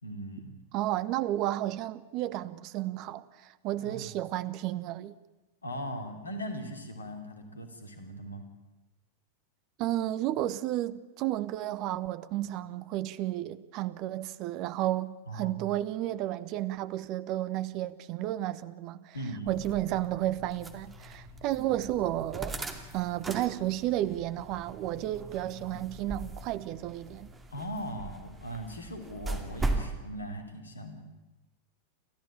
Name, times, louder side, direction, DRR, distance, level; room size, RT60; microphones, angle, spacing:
voice 1, 0.0-0.6 3.8-4.1 5.6-8.5 15.3-15.7 19.1-19.7 27.5-31.0, equal, 75° left, 3.1 m, -39 dB
voice 2, 0.7-5.2 9.8-19.2 19.5-22.6 22.9-27.3, right 14 dB, 40° right, 1.0 m, -32 dB
sound 1, 19.5-29.9, right 2 dB, 15° right, 2.5 m, -39 dB
29.0 x 14.0 x 8.9 m
figure-of-eight pair, 90°, 0 cm